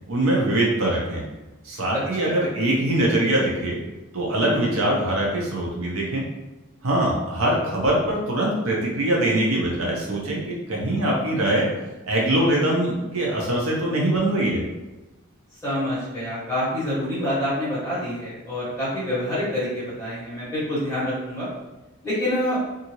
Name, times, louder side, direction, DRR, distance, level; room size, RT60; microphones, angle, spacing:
voice 1, 0.1-1.2 1.6-3.8 4.1-6.2 6.8-11.7 12.1-14.6, right 1 dB, 75° right, -2 dB, 0.7 m, -23 dB
voice 2, 1.9-2.3 15.6-21.5 22.0-22.6, left 1 dB, 15° left, -10 dB, 1.3 m, -27 dB
2.6 x 2.6 x 2.9 m, 1.1 s
head